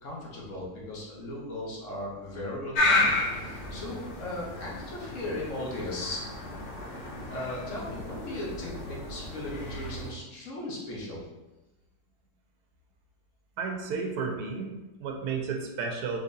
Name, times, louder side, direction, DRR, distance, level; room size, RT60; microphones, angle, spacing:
voice 1, 0.0-6.3 7.3-11.3, left 1 dB, 55° left, -4 dB, 1.1 m, -37 dB
sound 1, 2.7-10.1, left 2 dB, 75° left, 1.3 m, -32 dB
voice 2, 13.6-16.2, right 5 dB, 75° right, 1 dB, 1.0 m, -32 dB
3.8 x 2.9 x 2.6 m, 1.1 s
omnidirectional pair, 1.9 m